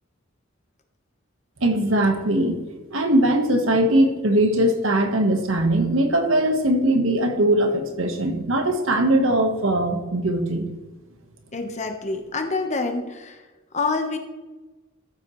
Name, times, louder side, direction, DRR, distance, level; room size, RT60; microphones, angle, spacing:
voice 1, 1.6-2.6 2.9-10.7, right 1 dB, 75° right, 5 dB, 1.4 m, -20 dB
voice 2, 11.5-13.4 13.7-14.2, left 3 dB, 35° left, 5 dB, 1.1 m, -27 dB
13.5 x 7.9 x 3.2 m, 1.2 s
head